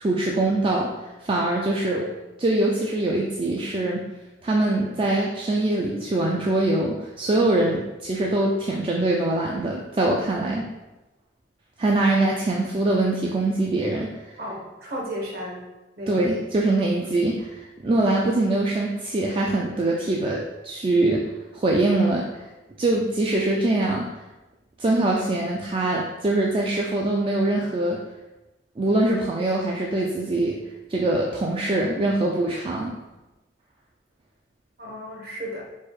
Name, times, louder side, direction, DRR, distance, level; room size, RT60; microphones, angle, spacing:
voice 1, 0.0-0.9 1.2-2.1 2.4-4.0 4.4-10.6 11.8-14.3 16.1-22.5 22.8-24.1 24.8-28.0 28.8-30.6 30.9-32.9, right 2 dB, 30° right, -2 dB, 0.3 m, -23 dB
voice 2, 14.4-15.6 16.0-16.2 34.8-35.6, equal, 55° right, -2 dB, 1.1 m, -34 dB
4.7 x 2.4 x 4.2 m, 1.0 s
head